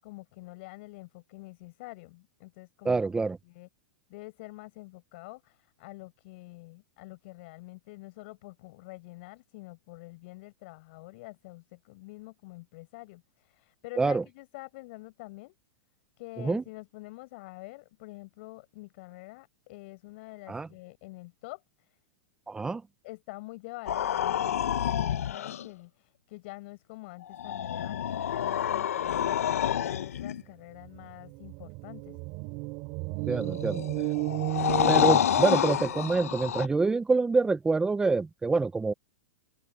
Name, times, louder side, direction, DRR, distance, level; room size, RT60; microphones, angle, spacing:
voice 1, 0.0-3.0 3.4-3.7 4.1-15.6 16.2-22.0 23.0-32.2, left 23 dB, 50° left, 7.4 m, -46 dB
voice 2, 2.8-3.4 14.0-14.2 16.4-16.6 20.5-20.7 22.5-22.8 33.3-33.9 34.9-38.9, right 3 dB, 10° right, 0.9 m, -26 dB
sound 1, 23.9-25.7 27.2-30.4 33.3-36.7, left 10 dB, 85° left, 0.9 m, -28 dB
sound 2, 30.4-30.5 30.8-35.9, right 27 dB, 40° right, 4.8 m, -34 dB
open air
hypercardioid pair, 145°, 8 cm